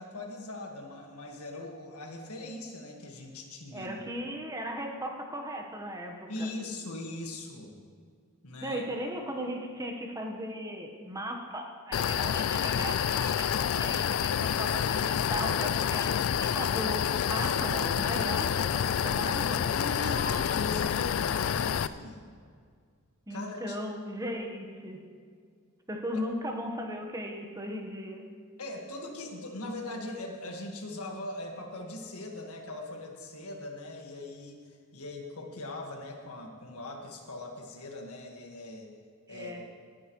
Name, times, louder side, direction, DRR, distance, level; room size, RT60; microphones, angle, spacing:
voice 1, 0.0-3.9 6.3-7.7 8.4-8.8 19.7-22.3 23.3-23.8 26.1-26.2 28.6-34.6 34.9-38.9 39.3-39.7, left 2 dB, 90° left, 2 dB, 1.7 m, -40 dB
voice 2, 3.7-6.5 8.6-19.7 23.3-25.0 25.9-28.3 39.3-39.6, equal, 15° right, 2 dB, 1.2 m, -37 dB
sound 1, 11.9-21.9, left 8 dB, 65° left, 0.3 m, -28 dB
19.0 x 9.7 x 3.1 m, 2.1 s
head